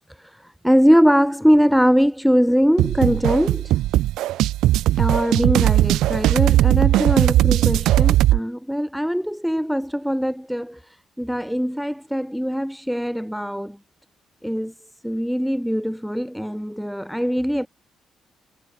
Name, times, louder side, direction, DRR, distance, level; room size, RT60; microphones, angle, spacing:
voice 1, 0.2-3.7 4.9-10.8 11.2-13.8 14.4-14.7 15.0-17.7, equal, ahead, 6.5 m, -21 dB
sound 1, 2.8-8.4, right 15 dB, 90° right, 1.1 m, -18 dB
cardioid pair, 90°, 0 cm